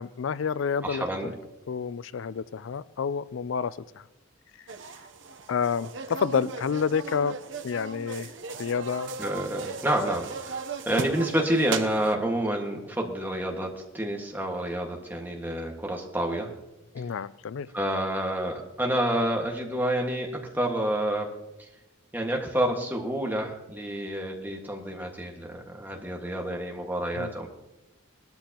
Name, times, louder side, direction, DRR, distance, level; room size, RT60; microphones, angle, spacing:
voice 1, 0.0-1.0 1.7-3.8 5.5-7.4 7.6-8.3 8.6-9.1 16.9-17.7 27.2-27.3, left 6 dB, 70° left, 18 dB, 0.4 m, -29 dB
voice 2, 0.8-1.3 9.2-10.6 10.8-16.5 17.7-21.3 22.1-27.5, right 1 dB, 10° right, 0 dB, 1.7 m, -29 dB
sound 1, 4.7-12.1, right 4 dB, 65° right, 0.8 m, -37 dB
19.5 x 13.0 x 3.0 m, 0.96 s
head